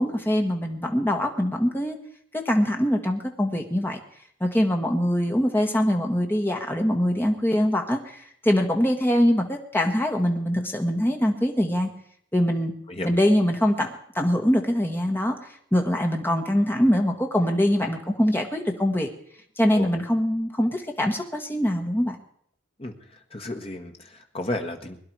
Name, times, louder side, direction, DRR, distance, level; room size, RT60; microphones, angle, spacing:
voice 1, 0.0-2.0 2.4-4.0 4.4-11.9 12.3-12.7 13.0-15.3 15.7-19.1 19.6-22.2, equal, 10° left, 3 dB, 1.5 m, -23 dB
voice 2, 23.3-25.0, left 1 dB, 30° left, 4 dB, 1.5 m, -32 dB
21.5 x 11.0 x 4.7 m, 0.64 s
head